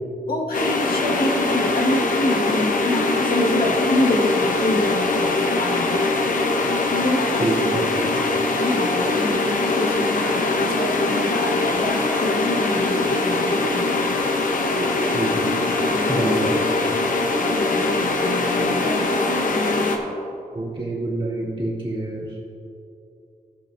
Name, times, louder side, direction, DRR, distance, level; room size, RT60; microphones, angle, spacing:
voice 1, 0.3-6.1 6.9-7.7 8.6-14.2 14.7-15.0 15.9-16.3 17.4-19.9, left 1 dB, 85° left, -3 dB, 1.7 m, -26 dB
sound 1, 0.5-20.0, left 2 dB, 65° left, 0.9 m, -22 dB
voice 2, 7.4-8.1 15.1-15.5 16.1-16.6 20.5-22.3, right 2 dB, 35° right, -5 dB, 2.2 m, -26 dB
17.0 x 7.1 x 2.7 m, 2.7 s
wide cardioid pair, 160°, 15 cm